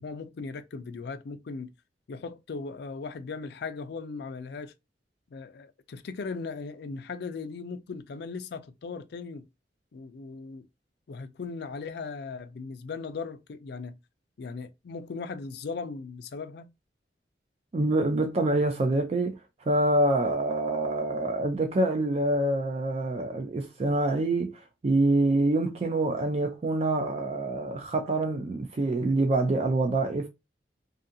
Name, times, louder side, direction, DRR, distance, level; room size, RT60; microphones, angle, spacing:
voice 1, 0.0-1.7 2.1-4.7 5.3-9.5 9.9-10.7 11.1-14.0 14.4-16.7, left 4 dB, 65° left, 0.4 m, -38 dB
voice 2, 17.7-19.4 19.7-30.3, right 2 dB, 35° right, 0.4 m, -26 dB
2.6 x 2.4 x 2.6 m
head